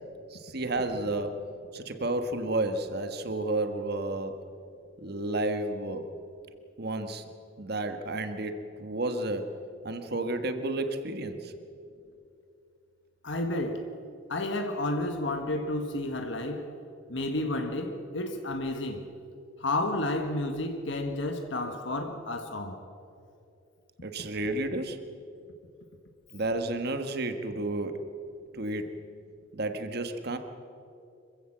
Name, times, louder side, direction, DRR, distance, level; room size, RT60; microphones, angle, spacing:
voice 1, 0.3-1.4 1.7-4.4 5.0-6.1 6.8-7.2 7.6-9.5 9.8-11.5 24.0-25.0 26.3-28.0 28.5-28.9 29.5-30.4, right 2 dB, 50° right, 1.5 m, -31 dB
voice 2, 13.2-13.9 14.3-16.7 17.1-19.1 19.6-22.8, left 1 dB, 65° left, 1.4 m, -31 dB
26.0 x 15.5 x 7.4 m
head